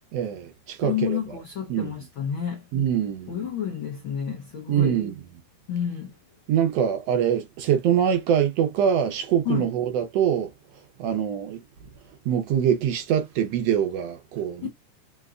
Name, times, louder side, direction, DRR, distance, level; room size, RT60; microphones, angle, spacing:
voice 1, 0.1-1.2 1.7-1.9 2.7-3.5 4.7-5.2 6.5-10.5 11.0-11.6 12.2-14.7, right 9 dB, 70° right, 1.6 m, -24 dB
voice 2, 0.8-2.6 3.3-5.0 5.7-6.1 9.4-9.7 14.6-14.7, left 9 dB, 80° left, 1.1 m, -30 dB
5.3 x 2.8 x 2.4 m
omnidirectional pair, 3.6 m